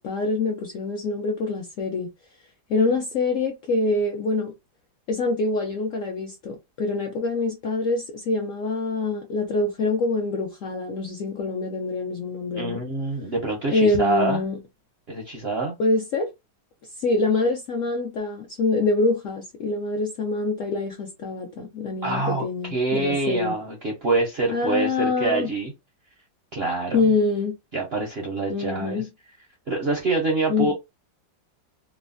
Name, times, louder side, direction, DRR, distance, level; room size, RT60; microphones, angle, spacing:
voice 1, 0.0-2.1 2.7-4.5 5.1-12.8 13.7-14.6 15.8-16.3 17.0-23.5 24.5-25.5 26.9-27.5 28.5-29.0 30.5-30.7, left 3 dB, 70° left, 0.7 m, -25 dB
voice 2, 12.5-14.4 15.1-15.7 22.0-22.4 22.7-25.7 26.5-27.0 27.7-29.0 29.7-30.7, right 3 dB, 60° right, 0.6 m, -25 dB
3.2 x 2.0 x 2.5 m
omnidirectional pair, 1.9 m